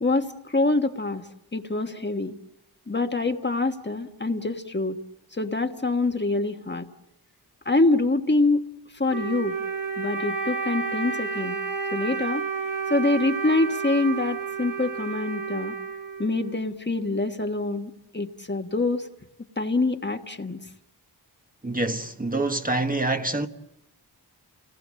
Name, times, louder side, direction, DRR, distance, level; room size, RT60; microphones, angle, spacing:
voice 1, 0.0-2.3 2.9-5.0 5.3-6.9 7.6-8.7 8.9-9.5 10.0-11.6 11.9-12.5 12.9-15.7 16.2-19.1 19.6-20.6, left 2 dB, 25° left, 1.4 m, -25 dB
Wind instrument woodwind instrument, 9.1-16.6, right 5 dB, 50° right, 1.6 m, -31 dB
voice 2, 21.6-23.5, right 2 dB, 20° right, 1.3 m, -26 dB
29.0 x 19.0 x 7.5 m
cardioid pair, 55°, 40 cm